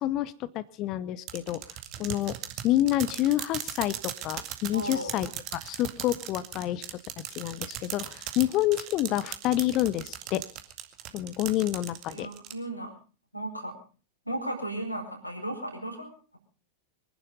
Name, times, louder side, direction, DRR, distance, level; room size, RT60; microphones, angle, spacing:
voice 1, 0.0-1.6 2.0-2.4 2.6-7.0 7.4-10.4 11.1-12.3, left 14 dB, 40° left, 18 dB, 0.8 m, -28 dB
sound 1, 1.3-12.5, right 11 dB, 40° right, 2.0 m, -38 dB
voice 2, 4.7-5.2 12.1-12.9 13.3-13.7 14.2-16.4, right 1 dB, 90° left, 2 dB, 4.7 m, -35 dB
24.0 x 11.0 x 5.4 m, 0.38 s
figure-of-eight pair, 90°, 0 cm